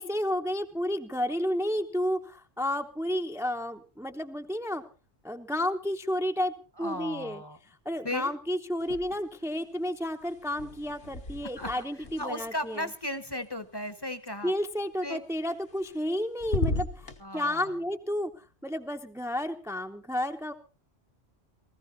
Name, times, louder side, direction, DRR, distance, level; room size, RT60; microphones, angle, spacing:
voice 1, 0.0-4.8 5.2-6.5 6.8-7.4 7.8-12.8 14.4-20.5, left 1 dB, 5° right, 5 dB, 0.7 m, -31 dB
voice 2, 6.8-7.6 8.0-8.3 11.6-11.8 12.2-14.5 15.0-15.2 17.2-17.8, left 1 dB, 25° left, 11 dB, 1.0 m, -36 dB
sound 1, 8.8-9.5 9.8-13.9 15.5-16.1 16.4-17.2, left 2 dB, 60° left, 1.6 m, -36 dB
18.5 x 15.0 x 4.0 m, 0.35 s
omnidirectional pair, 1.1 m